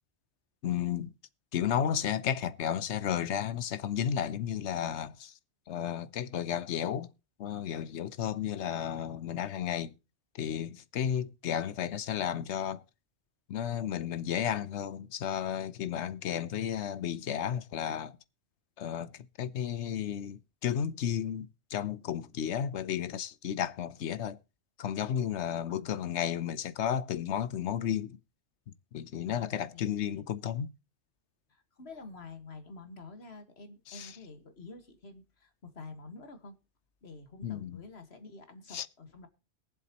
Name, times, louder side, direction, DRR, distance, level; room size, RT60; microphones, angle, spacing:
voice 1, 0.6-1.1 1.5-5.3 5.7-7.1 7.4-9.9 10.4-12.8 13.5-18.1 18.8-19.1 19.4-24.4 24.8-28.2 28.9-30.7 33.9-34.1 37.4-37.8 38.7-38.8, left 9 dB, 85° left, 1.1 m, -33 dB
voice 2, 25.7-26.3 29.3-30.3 31.5-36.6 37.0-39.3, left 3 dB, 65° left, 2.0 m, -49 dB
22.0 x 7.6 x 3.0 m
omnidirectional pair, 1.1 m